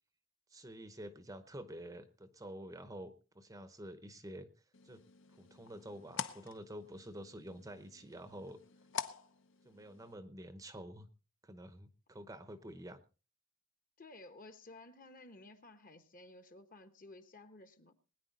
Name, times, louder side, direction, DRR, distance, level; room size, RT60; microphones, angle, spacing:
voice 1, 0.5-4.5 4.8-5.0 5.4-8.6 9.6-11.1 11.4-13.0, right 1 dB, 15° right, 0.8 m, -49 dB
sound 1, 4.7-10.1, left 7 dB, 60° left, 0.9 m, -47 dB
voice 2, 14.0-17.9, left 2 dB, 40° left, 1.2 m, -55 dB
21.0 x 9.8 x 4.1 m
head